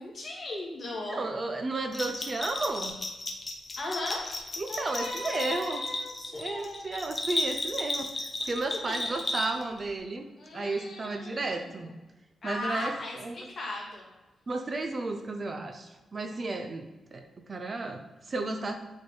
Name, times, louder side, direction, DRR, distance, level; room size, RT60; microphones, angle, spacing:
voice 1, 0.0-1.2 3.8-4.2 4.7-7.0 8.9-9.1 10.4-11.9 12.4-14.1, left 2 dB, 40° left, -3 dB, 1.8 m, -37 dB
voice 2, 1.1-3.0 4.6-5.8 6.3-10.3 10.5-11.9 12.4-13.5 14.5-18.8, right 2 dB, 30° right, 5 dB, 0.5 m, -33 dB
Bell, 1.9-9.8, left 2 dB, 25° left, 0.8 m, -34 dB
8.6 x 3.5 x 3.8 m, 1.1 s
wide cardioid pair, 165°, 0 cm